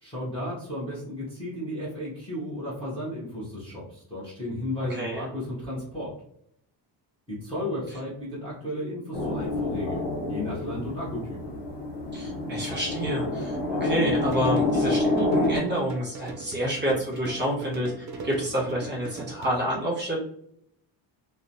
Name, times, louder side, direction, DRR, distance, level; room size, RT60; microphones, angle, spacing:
voice 1, 0.0-6.1 7.3-11.4, left 1 dB, 10° left, -10 dB, 0.7 m, -34 dB
voice 2, 4.9-5.2 12.1-20.2, equal, 25° right, -6 dB, 1.2 m, -28 dB
sound 1, 9.1-15.6, left 2 dB, 65° left, 1.1 m, -27 dB
sound 2, 14.1-19.6, right 4 dB, 40° right, 0.4 m, -40 dB
3.0 x 2.1 x 2.5 m, 0.68 s
cardioid pair, 175°, 45 cm